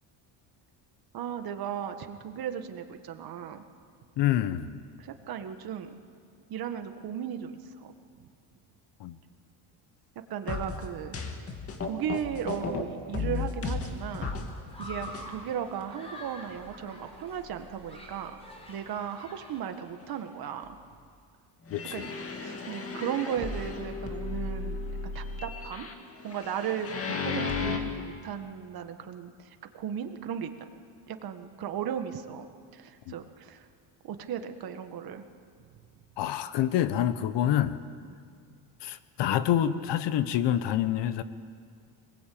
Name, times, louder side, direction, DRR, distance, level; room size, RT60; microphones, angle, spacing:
voice 1, 1.1-3.6 5.0-6.0 6.5-7.9 8.2-8.3 10.3-11.2 11.8-14.5 14.8-18.4 18.7-20.8 21.9-22.1 22.4-25.9 26.2-30.7 31.1-32.5 32.7-33.7 34.0-35.2 38.0-38.1, right 8 dB, 50° right, 7 dB, 1.7 m, -36 dB
voice 2, 4.2-4.8 9.0-9.2 21.7-21.9 33.1-33.2 36.2-37.8 38.8-41.2, left 11 dB, 65° left, 13 dB, 1.1 m, -27 dB
sound 1, 10.5-12.8 13.1-14.5 14.8-15.3 15.8-15.9 16.6-16.7 17.2-17.3 21.7-27.8, left 4 dB, 30° left, 2.2 m, -34 dB
Human group actions, 13.6-20.2, equal, 15° left, 4.4 m, -47 dB
23.5 x 20.5 x 8.7 m, 2.1 s
cardioid pair, 165°, 45 cm